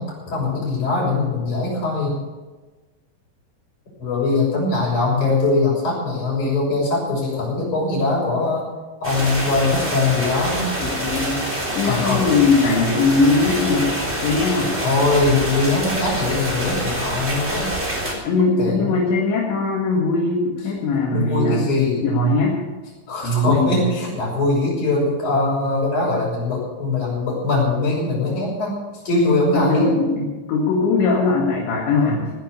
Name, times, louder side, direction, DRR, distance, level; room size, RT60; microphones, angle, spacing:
voice 1, 0.0-2.2 4.0-8.7 9.0-10.7 11.8-12.2 14.8-17.7 18.4-19.1 20.9-22.0 23.1-28.8 29.0-30.1 31.9-32.3, left 3 dB, 40° left, -3 dB, 7.6 m, -21 dB
sound 1, 9.0-18.1, right 1 dB, 15° right, 3.0 m, -26 dB
voice 2, 10.8-11.4 11.8-13.9 14.2-14.7 18.2-21.7 22.0-22.6 23.2-24.0 29.5-32.3, left 3 dB, 70° left, -3 dB, 4.2 m, -20 dB
17.0 x 10.5 x 6.8 m, 1.2 s
omnidirectional pair, 5.4 m